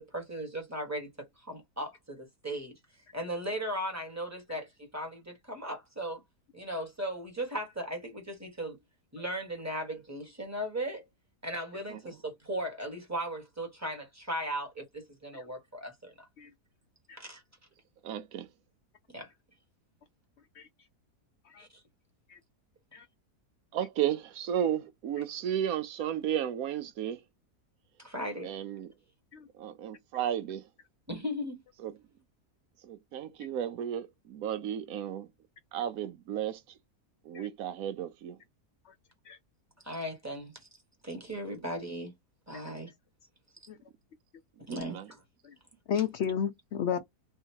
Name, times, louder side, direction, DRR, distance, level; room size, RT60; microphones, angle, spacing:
voice 1, 0.0-2.7 3.1-6.2 6.5-8.8 9.1-11.0 11.4-16.3 17.2-17.4 19.1-19.3 21.6-21.8 28.0-28.5 31.1-31.6 39.8-40.7 41.0-42.1 42.5-42.9 44.7-45.2, right 1 dB, 10° right, 1.5 m, -37 dB
voice 2, 18.0-18.5 23.7-27.2 28.4-28.9 29.6-30.6 31.8-31.9 32.8-35.3 35.7-36.6 37.3-38.4 44.7-45.1, right 10 dB, 70° right, 1.1 m, -33 dB
voice 3, 45.9-47.0, left 8 dB, 70° left, 0.6 m, -31 dB
3.5 x 2.7 x 4.5 m
omnidirectional pair, 1.7 m